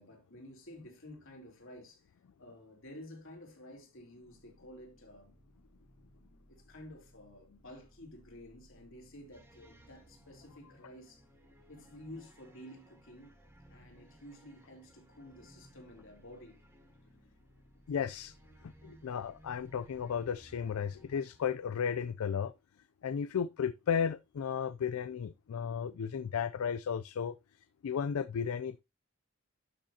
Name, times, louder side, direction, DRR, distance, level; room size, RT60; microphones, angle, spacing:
voice 1, 0.0-5.4 6.5-11.2 11.7-13.4 13.7-16.6, left 1 dB, 65° left, 3.5 m, -52 dB
sound 1, 4.2-21.1, equal, 40° left, 2.1 m, -64 dB
sound 2, 9.3-21.8, right 1 dB, 10° right, 2.1 m, -62 dB
voice 2, 17.9-18.3 18.8-22.5 23.0-27.4 27.8-28.8, left 7 dB, 80° left, 0.4 m, -34 dB
12.0 x 6.3 x 2.8 m
head